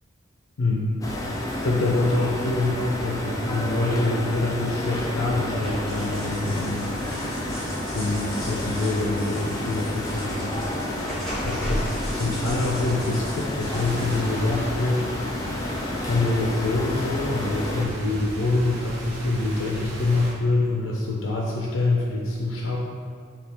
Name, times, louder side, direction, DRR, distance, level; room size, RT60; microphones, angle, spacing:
voice 1, 0.6-1.2 1.6-6.9 7.9-10.6 11.4-15.1 16.0-22.8, left 2 dB, 80° left, -2 dB, 0.5 m, -25 dB
sound 1, 1.0-17.9, left 1 dB, 15° left, 0.3 m, -30 dB
sound 2, 5.5-14.2, equal, ahead, 1.0 m, -35 dB
sound 3, 13.6-20.3, equal, 90° right, 1.1 m, -37 dB
3.4 x 2.4 x 4.3 m, 2.1 s
head